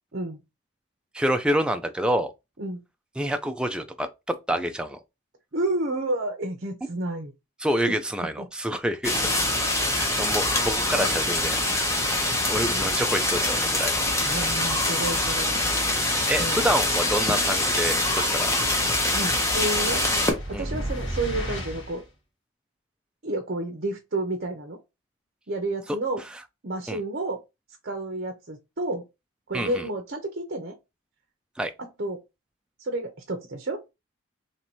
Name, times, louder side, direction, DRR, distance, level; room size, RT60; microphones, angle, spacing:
voice 1, 1.1-2.3 3.2-5.0 7.6-9.3 9.8-11.6 12.1-14.0 16.1-18.5 20.5-20.7 26.9-27.0 29.5-29.8 31.6-31.7, equal, 5° right, 0.3 m, -27 dB
voice 2, 5.5-7.3 7.9-8.0 8.4-8.5 12.6-12.9 14.2-15.6 16.4-16.7 19.1-20.0 20.5-22.0 23.2-24.8 25.5-26.2 26.6-27.4 27.8-29.0 29.5-30.8 31.8-32.2 32.8-33.8, right 2 dB, 50° right, 0.7 m, -30 dB
sound 1, 9.0-20.3, left 1 dB, 15° left, 0.7 m, -24 dB
sound 2, 19.4-22.0, equal, 65° left, 1.5 m, -33 dB
3.1 x 2.8 x 4.3 m
head